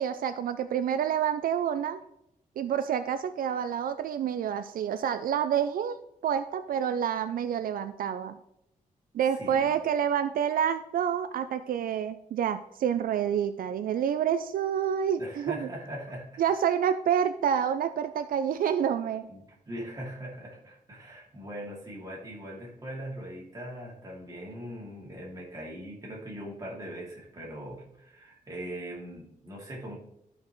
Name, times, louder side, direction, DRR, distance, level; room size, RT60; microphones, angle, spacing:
voice 1, 0.0-2.0 2.6-6.0 6.2-8.4 9.1-15.7 16.4-19.3, right 8 dB, 80° right, 10 dB, 0.4 m, -28 dB
voice 2, 9.3-9.8 15.2-16.4 19.3-29.9, equal, 25° right, -4 dB, 2.6 m, -41 dB
13.0 x 5.3 x 3.1 m, 0.80 s
wide cardioid pair, 150°, 14 cm